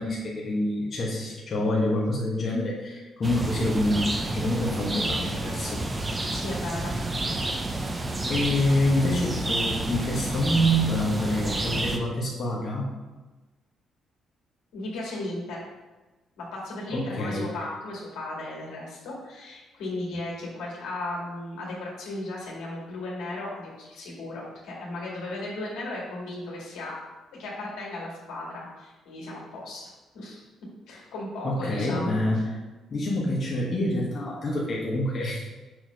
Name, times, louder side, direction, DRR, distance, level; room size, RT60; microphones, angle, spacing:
voice 1, 0.0-5.8 8.3-12.9 16.9-17.5 31.4-32.6 32.9-35.5, left 1 dB, 45° left, -4 dB, 1.2 m, -26 dB
sound 1, 3.2-12.0, right 2 dB, 25° right, 0.6 m, -30 dB
voice 2, 6.3-6.9 14.7-15.7 16.4-27.0 27.4-30.4 30.9-32.2, left 2 dB, 85° left, -4 dB, 2.0 m, -36 dB
6.3 x 3.0 x 5.1 m, 1.2 s
cardioid pair, 90°, 0 cm